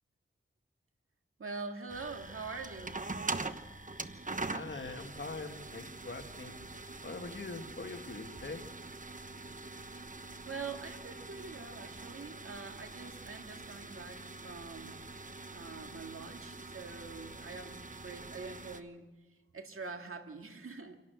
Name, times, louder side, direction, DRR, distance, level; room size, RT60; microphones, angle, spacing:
voice 1, 1.4-3.0 10.5-15.0 15.5-19.1 19.5-21.0, right 4 dB, 85° right, 4 dB, 2.0 m, -44 dB
sound 1, 1.9-18.8, right 3 dB, 40° right, 1.1 m, -44 dB
voice 2, 4.5-6.7 7.0-8.6, left 3 dB, 60° left, 5 dB, 2.0 m, -43 dB
28.0 x 11.5 x 8.0 m, 1.2 s
wide cardioid pair, 55°, 21 cm